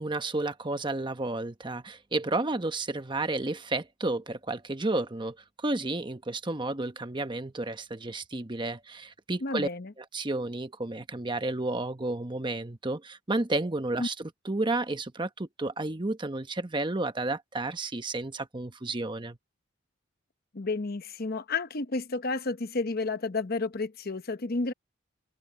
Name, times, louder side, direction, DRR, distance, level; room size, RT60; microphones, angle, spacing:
voice 1, 0.0-9.7 10.0-19.4, right 2 dB, 25° right, 1.0 m, -32 dB
voice 2, 9.4-9.9 14.0-14.1 20.5-24.7, left 3 dB, 50° left, 0.9 m, -31 dB
head